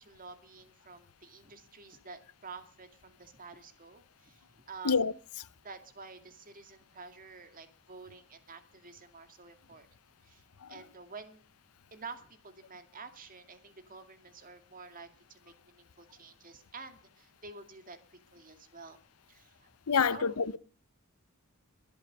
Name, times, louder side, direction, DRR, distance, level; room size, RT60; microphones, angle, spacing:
voice 1, 0.0-5.0 5.6-9.9 10.2-11.4 11.9-19.0 19.3-19.7 20.0-20.4, right 4 dB, 40° right, 2.2 m, -50 dB
voice 2, 19.9-20.6, left 5 dB, 80° left, 0.7 m, -26 dB
23.5 x 8.0 x 5.3 m
head